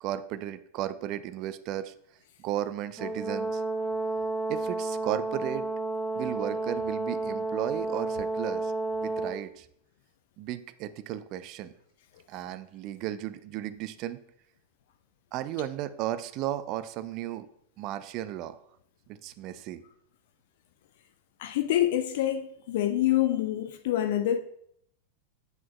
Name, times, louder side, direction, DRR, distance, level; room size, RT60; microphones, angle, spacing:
voice 1, 0.0-1.9 2.4-3.6 4.5-5.7 6.1-8.7 9.0-9.7 10.4-11.7 12.3-14.2 15.3-17.5 17.8-18.6 19.1-19.8, right 12 dB, 40° right, 0.4 m, -34 dB
Brass instrument, 3.0-9.4, right 2 dB, 15° right, 1.0 m, -31 dB
voice 2, 21.4-24.4, left 12 dB, 55° left, 0.3 m, -26 dB
7.9 x 5.8 x 2.3 m
figure-of-eight pair, 90°, 0 cm